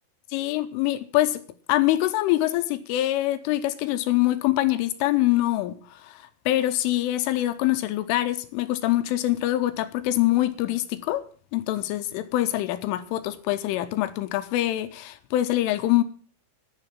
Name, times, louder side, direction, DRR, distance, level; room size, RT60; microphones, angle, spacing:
voice 1, 0.3-1.4 1.7-11.2 11.5-16.0, left 15 dB, 80° left, 3.1 m, -24 dB
11.0 x 10.0 x 7.2 m
omnidirectional pair, 5.9 m